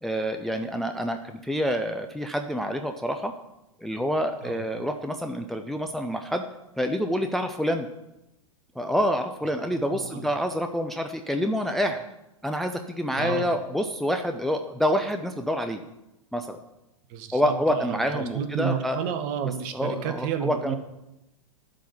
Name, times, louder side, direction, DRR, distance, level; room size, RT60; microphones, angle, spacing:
voice 1, 0.0-3.3 3.8-6.4 6.8-7.9 8.8-12.0 12.4-15.8 16.3-16.6 17.3-19.0 19.7-20.7, equal, ahead, 5 dB, 0.4 m, -27 dB
voice 2, 9.7-10.3 13.2-13.5 17.1-20.8, right 8 dB, 45° right, 9 dB, 1.1 m, -31 dB
11.5 x 4.1 x 7.2 m, 0.93 s
hypercardioid pair, 105°, 18 cm